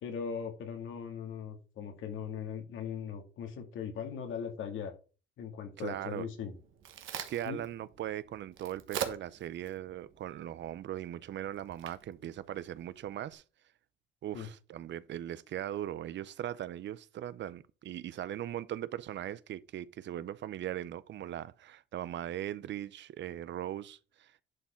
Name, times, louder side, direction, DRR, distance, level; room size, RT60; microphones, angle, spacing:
voice 1, 0.0-4.9 5.4-6.5 7.4-7.6 14.3-14.5, left 7 dB, 80° left, 2.2 m, -39 dB
voice 2, 5.8-6.3 7.1-13.4 14.2-24.4, right 11 dB, 65° right, 0.7 m, -39 dB
Crack, 6.4-13.3, right 9 dB, 80° right, 1.4 m, -44 dB
11.0 x 4.5 x 4.5 m
cardioid pair, 90°, 20 cm